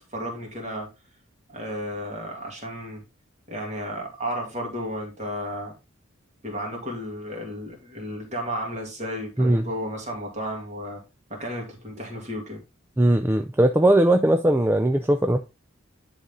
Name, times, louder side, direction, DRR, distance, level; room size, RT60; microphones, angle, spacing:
voice 1, 0.1-0.9 1.5-3.0 3.5-5.7 6.4-11.0 11.3-12.6, equal, 35° right, 2.6 m, -33 dB
voice 2, 9.4-9.7 13.0-15.4, right 1 dB, 10° right, 0.4 m, -19 dB
10.5 x 4.0 x 3.7 m
head